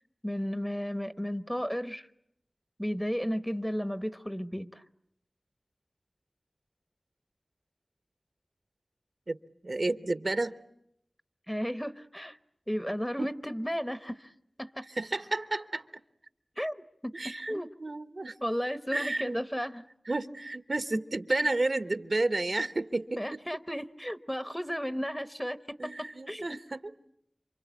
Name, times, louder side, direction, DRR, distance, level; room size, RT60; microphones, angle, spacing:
voice 1, 0.2-2.1 2.8-4.8 11.5-12.4 12.7-14.3 14.6-14.9 16.6-16.7 17.0-17.7 18.4-19.8 20.9-21.0 21.3-21.5 23.2-26.6, equal, 5° left, 12 dB, 1.0 m, -34 dB
voice 2, 9.6-10.6 13.2-13.3 14.9-16.0 17.1-18.4 18.9-19.4 20.1-23.4 25.8-26.9, right 2 dB, 60° right, 11 dB, 1.0 m, -31 dB
28.0 x 25.0 x 8.4 m, 0.74 s
wide cardioid pair, 60°, 0 cm